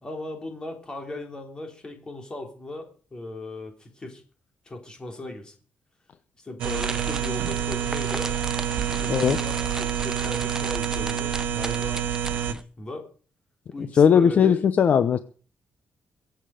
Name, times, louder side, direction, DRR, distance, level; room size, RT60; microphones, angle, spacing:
voice 1, 0.0-4.2 4.7-5.6 6.4-8.3 9.0-12.0 12.3-13.1 13.7-14.6, left 2 dB, 25° left, 3 dB, 3.7 m, -37 dB
sound 1, 6.6-12.6, right 2 dB, 15° right, 0.8 m, -36 dB
sound 2, 6.6-12.5, right 9 dB, 85° right, 1.1 m, -28 dB
voice 2, 14.0-15.2, left 7 dB, 50° left, 12 dB, 0.7 m, -18 dB
23.5 x 8.1 x 5.1 m, 0.40 s
cardioid pair, 140°, 3 cm